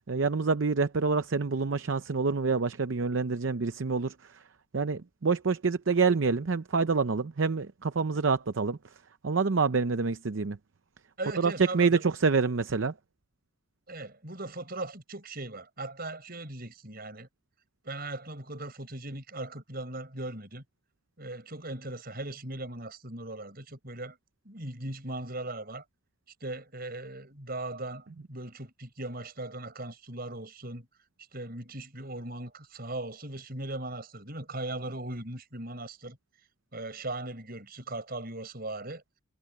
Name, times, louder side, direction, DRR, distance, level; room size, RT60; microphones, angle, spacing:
voice 1, 0.1-4.4 4.7-8.8 9.2-10.6 11.4-12.9, right 4 dB, 65° right, 0.6 m, -27 dB
voice 2, 11.2-12.0 13.9-17.3 17.8-20.6 21.2-24.2 24.4-25.8 26.4-30.9 31.3-36.2 36.7-39.0, right 2 dB, 45° right, 6.7 m, -39 dB
head